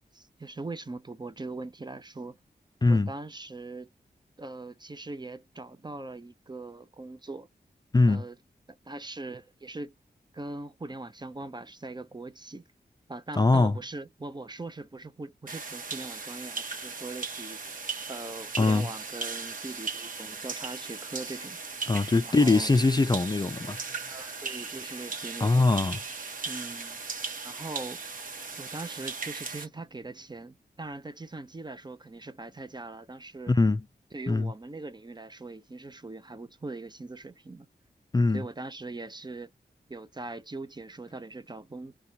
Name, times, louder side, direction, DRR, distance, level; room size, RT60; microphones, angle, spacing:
voice 1, 0.1-2.4 2.9-3.9 4.4-7.5 8.1-8.4 8.9-9.9 10.3-12.7 13.1-17.7 18.1-21.6 22.2-22.7 24.1-25.7 26.5-27.0 27.4-28.0 28.6-33.6 34.1-37.7 38.3-39.5 39.9-42.1, right 2 dB, 25° right, 0.5 m, -41 dB
voice 2, 7.9-8.2 13.4-13.7 18.6-18.9 21.9-23.8 25.4-26.0 33.5-33.8 34.3-34.5 38.1-38.4, left 3 dB, 25° left, 0.4 m, -22 dB
sound 1, 15.5-29.7, right 4 dB, 50° right, 1.0 m, -37 dB
2.7 x 2.3 x 3.9 m
wide cardioid pair, 75°, 17 cm